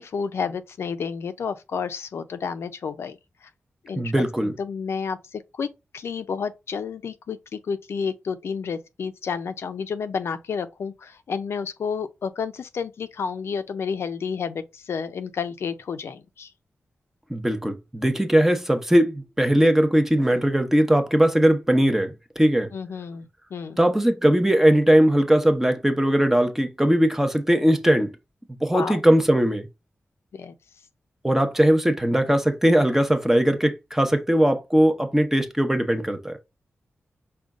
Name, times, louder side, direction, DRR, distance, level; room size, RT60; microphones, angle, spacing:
voice 1, 0.0-3.2 3.8-5.7 5.9-16.5 22.7-23.8 28.7-29.0 30.3-30.5, left 6 dB, 75° left, 0.4 m, -31 dB
voice 2, 4.0-4.5 17.3-22.7 23.8-28.1 28.6-29.7 31.2-36.4, right 1 dB, 10° right, 0.6 m, -20 dB
5.0 x 2.3 x 3.6 m
wide cardioid pair, 100°, 4 cm